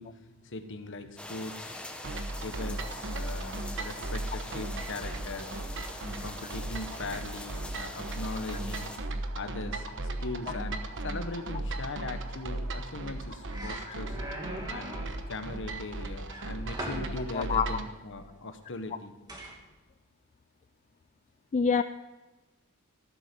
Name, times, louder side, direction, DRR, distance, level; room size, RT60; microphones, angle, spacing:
voice 1, 0.0-1.8 2.4-5.5 6.0-8.9 9.4-14.2 14.7-15.0 15.3-19.2, left 2 dB, 60° left, 8 dB, 1.3 m, -40 dB
sound 1, 1.2-9.0, left 1 dB, 5° left, 1.3 m, -43 dB
sound 2, 2.0-17.9, right 2 dB, 60° right, 1.1 m, -37 dB
sound 3, 13.0-13.2 13.5-15.2 16.3-17.1 19.3-19.6, right 1 dB, 20° right, 2.4 m, -40 dB
voice 2, 17.3-17.7 21.5-21.8, left 6 dB, 35° left, 10 dB, 0.3 m, -25 dB
14.5 x 12.5 x 5.4 m, 1.2 s
head